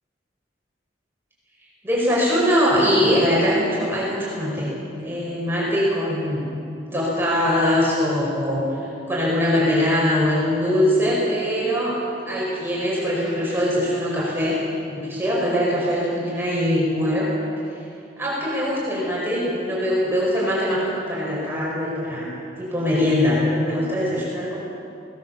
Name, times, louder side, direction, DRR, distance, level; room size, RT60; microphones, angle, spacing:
voice 1, 1.8-4.7 5.0-6.5 6.9-8.6 9.1-11.9 12.3-17.3 18.2-22.3 22.6-24.6, equal, 10° right, -6 dB, 5.2 m, -22 dB
20.5 x 18.0 x 7.0 m, 2.6 s
head